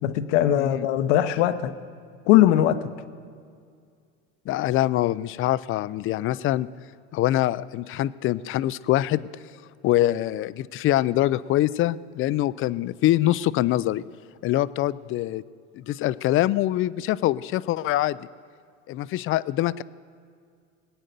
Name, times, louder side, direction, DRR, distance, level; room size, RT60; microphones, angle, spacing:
voice 1, 0.0-1.7 2.3-2.9, left 12 dB, 75° left, 11 dB, 0.9 m, -20 dB
voice 2, 0.5-0.9 4.5-6.7 7.1-9.3 9.8-14.0 14.4-15.4 15.7-18.2 18.9-19.8, left 14 dB, 35° left, 18 dB, 0.4 m, -24 dB
20.5 x 9.0 x 6.7 m, 2.2 s
supercardioid pair, 100°, 36 cm